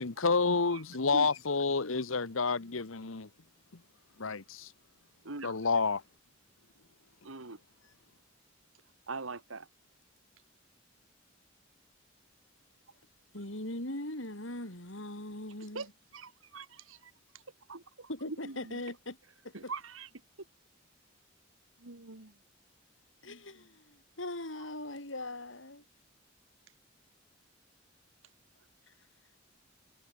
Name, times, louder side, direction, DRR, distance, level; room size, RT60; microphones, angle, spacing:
voice 1, 0.0-3.3 4.2-4.7 5.4-6.0, left 4 dB, 90° left, 1.2 m, -29 dB
voice 2, 7.2-7.6 9.1-9.7 15.7-15.9 16.1-17.1 17.7-18.8 19.5-20.1 21.8-22.3, right 3 dB, 90° right, 2.0 m, -42 dB
voice 3, 13.3-15.9 18.1-19.2 19.4-19.7 23.2-25.8 28.9-29.0, left 1 dB, 75° left, 7.1 m, -40 dB
head